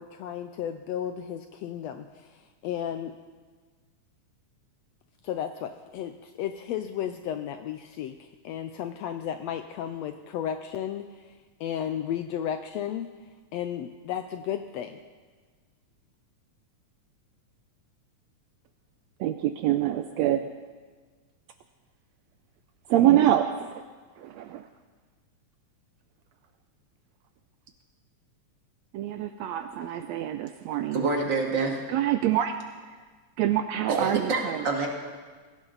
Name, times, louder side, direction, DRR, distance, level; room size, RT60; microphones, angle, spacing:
voice 1, 0.0-2.3 2.6-3.1 5.2-11.1 11.6-13.1 13.5-15.0, left 9 dB, 75° left, 8 dB, 1.6 m, -33 dB
voice 2, 19.2-20.5 22.9-23.8 24.2-24.7 28.9-31.0 31.9-32.6 33.4-34.7, right 12 dB, 75° right, 8 dB, 1.7 m, -25 dB
voice 3, 30.9-31.8 33.9-34.9, right 4 dB, 40° right, 1 dB, 2.3 m, -27 dB
21.0 x 16.5 x 4.0 m, 1.4 s
omnidirectional pair, 3.5 m